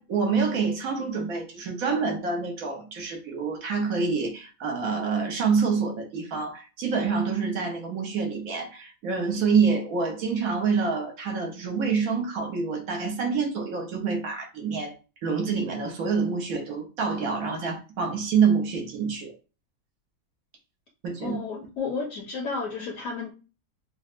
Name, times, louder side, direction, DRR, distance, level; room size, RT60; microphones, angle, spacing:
voice 1, 0.0-14.9 15.2-19.3 21.0-21.4, right 5 dB, 65° right, 1.2 m, -27 dB
voice 2, 21.2-23.3, left 4 dB, 65° left, 1.1 m, -32 dB
6.2 x 2.1 x 2.4 m
omnidirectional pair, 1.6 m